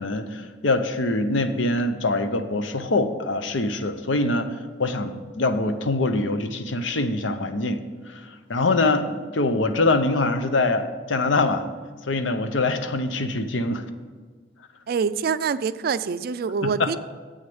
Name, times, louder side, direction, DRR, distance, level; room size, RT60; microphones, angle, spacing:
voice 1, 0.0-4.5 4.8-7.8 8.1-11.6 12.1-13.8 16.6-17.0, left 2 dB, 85° left, 9 dB, 0.7 m, -24 dB
voice 2, 14.9-17.0, right 5 dB, 55° right, 15 dB, 0.3 m, -25 dB
8.0 x 6.4 x 7.1 m, 1.5 s
head